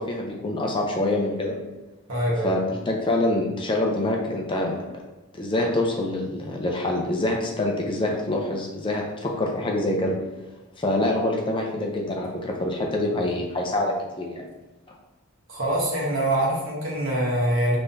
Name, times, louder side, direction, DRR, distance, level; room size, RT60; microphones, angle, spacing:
voice 1, 0.0-1.6 2.4-2.6 2.9-4.7 5.3-10.2 10.8-14.4 14.9-15.0, left 1 dB, 25° left, 0 dB, 0.5 m, -25 dB
voice 2, 2.1-2.5 15.5-17.8, right 1 dB, 65° right, -4 dB, 1.4 m, -24 dB
5.5 x 3.3 x 2.7 m, 1.1 s
head